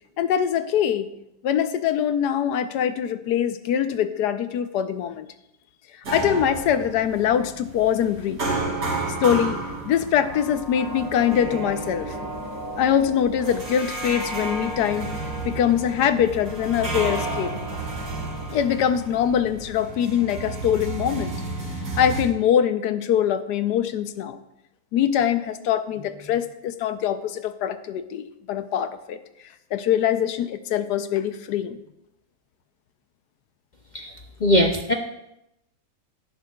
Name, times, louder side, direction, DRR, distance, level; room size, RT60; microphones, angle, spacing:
voice 1, 0.2-1.1 1.4-5.3 6.1-8.4 9.2-12.1 12.8-15.1 15.4-17.5 18.5-21.3 22.0-24.4 24.9-29.2 29.7-31.8, left 9 dB, 80° left, 10 dB, 1.3 m, -23 dB
sound 1, 6.0-22.2, right 2 dB, 65° right, 2.9 m, -31 dB
voice 2, 34.4-34.9, left 1 dB, 65° left, 3 dB, 0.4 m, -20 dB
17.0 x 9.5 x 2.3 m, 0.85 s
omnidirectional pair, 1.8 m